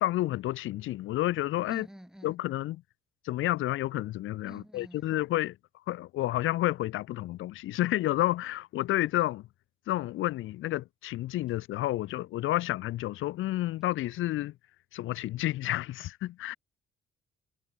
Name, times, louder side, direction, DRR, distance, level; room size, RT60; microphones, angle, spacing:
voice 1, 0.0-1.9 2.2-2.8 3.2-5.6 5.9-9.5 9.9-14.5 14.9-16.6, left 15 dB, 85° left, 1.0 m, -30 dB
voice 2, 1.7-2.3 4.5-5.2, equal, 5° right, 5.2 m, -48 dB
cardioid pair, 90°, 20 cm